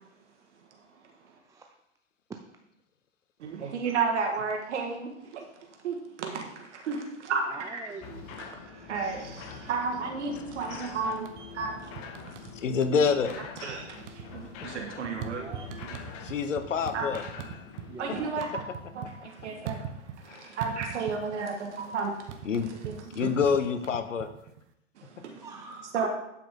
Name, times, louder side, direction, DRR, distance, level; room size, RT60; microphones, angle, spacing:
voice 1, 1.3-1.8 2.3-2.4 7.5-8.3 15.1-15.7 17.9-18.4 25.4-26.1, right 3 dB, 10° right, 4 dB, 0.4 m, -44 dB
voice 2, 3.4-7.9 8.7-12.5 13.6-15.4 15.7-15.9 16.2-16.3 16.9-17.1 18.0-18.6 18.9-22.5 22.9-23.4 25.0-25.4 25.9-26.1, right 5 dB, 70° right, 3 dB, 1.8 m, -33 dB
sound 1, 8.0-18.3, left 5 dB, 40° left, 1.3 m, -44 dB
sound 2, 11.1-11.6 12.0-13.0 13.3-13.8 14.0-17.9 18.2-20.3 20.6-21.5 21.7-24.6, right 8 dB, 50° right, 1.2 m, -41 dB
voice 3, 12.5-13.4 16.2-17.2 20.3-20.6 22.4-22.7 23.1-24.3, left 6 dB, 80° left, 10 dB, 1.0 m, -27 dB
11.5 x 5.9 x 3.7 m, 0.82 s
hypercardioid pair, 105°, 37 cm